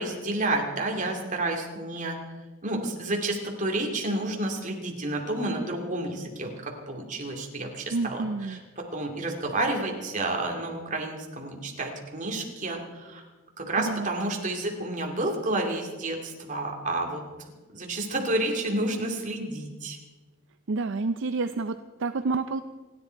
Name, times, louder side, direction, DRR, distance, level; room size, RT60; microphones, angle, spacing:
voice 1, 0.0-2.2 2.6-6.5 6.9-8.2 8.8-13.2 13.6-17.2 17.7-20.0, right 2 dB, 35° right, 1 dB, 2.5 m, -30 dB
voice 2, 7.9-8.6 13.8-14.1 20.7-22.6, right 3 dB, 60° right, 10 dB, 0.5 m, -29 dB
29.5 x 10.5 x 4.6 m, 1.3 s
head